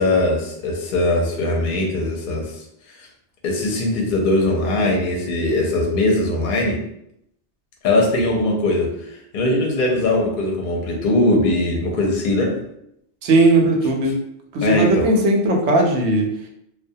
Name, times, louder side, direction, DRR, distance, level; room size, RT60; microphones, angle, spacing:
voice 1, 0.0-2.6 2.9-3.1 3.4-6.8 7.8-9.0 9.3-12.6 14.6-15.1, left 2 dB, 60° left, 0 dB, 0.7 m, -20 dB
voice 2, 13.2-14.1 14.5-16.3, right 2 dB, 85° right, 1 dB, 0.9 m, -17 dB
2.2 x 2.1 x 2.6 m, 0.76 s
omnidirectional pair, 1.1 m